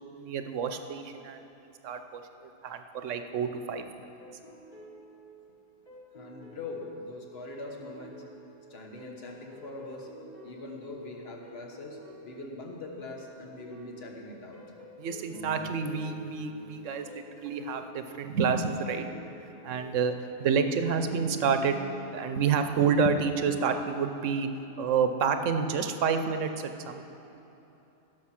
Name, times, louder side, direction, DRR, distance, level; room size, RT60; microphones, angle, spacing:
voice 1, 0.2-1.4 1.8-2.2 2.6-3.8 15.0-19.1 19.6-20.1 20.4-21.8 22.1-24.5 24.8-27.1, right 6 dB, 90° right, 8 dB, 1.1 m, -28 dB
sound 1, 4.2-22.1, equal, 35° left, 2.3 m, -49 dB
voice 2, 6.1-8.2 8.7-10.1 10.4-12.0 12.2-14.6, left 2 dB, 55° left, 1 dB, 1.5 m, -42 dB
15.5 x 6.8 x 5.8 m, 3.0 s
omnidirectional pair, 1.2 m